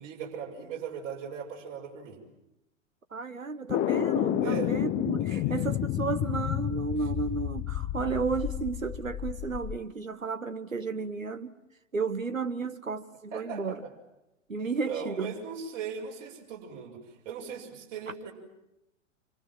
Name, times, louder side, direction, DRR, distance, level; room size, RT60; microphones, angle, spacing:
voice 1, 0.0-2.2 4.4-4.7 5.3-5.4 13.3-13.9 14.6-17.0 17.2-18.3, right 7 dB, 40° right, 6.5 m, -38 dB
voice 2, 3.1-11.5 11.9-13.8 14.5-15.3, right 4 dB, 90° right, 1.2 m, -33 dB
sound 1, 3.7-9.8, left 13 dB, 30° left, 1.0 m, -30 dB
28.0 x 25.0 x 7.6 m
figure-of-eight pair, 95°, 38 cm